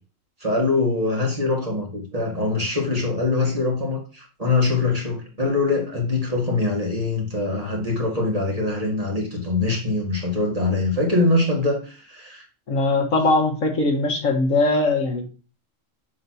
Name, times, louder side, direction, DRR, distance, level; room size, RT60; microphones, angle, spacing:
voice 1, 0.4-12.5, left 3 dB, 30° right, 2.1 m, -23 dB
voice 2, 12.7-15.2, left 2 dB, 80° left, 1.9 m, -20 dB
7.3 x 5.9 x 2.9 m
omnidirectional pair, 1.3 m